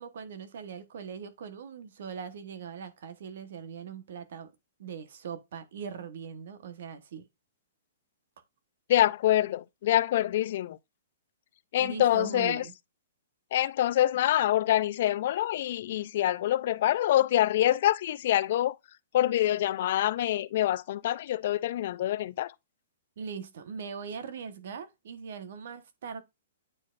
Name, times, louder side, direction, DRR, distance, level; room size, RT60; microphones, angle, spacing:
voice 1, 0.0-4.5 4.8-7.3 11.8-12.7 23.2-26.2, right 6 dB, 65° right, 1.1 m, -40 dB
voice 2, 8.9-10.8 11.7-12.6 13.5-18.8 19.1-22.5, left 13 dB, 55° left, 0.4 m, -26 dB
8.9 x 4.2 x 2.5 m
hypercardioid pair, 155°, 0 cm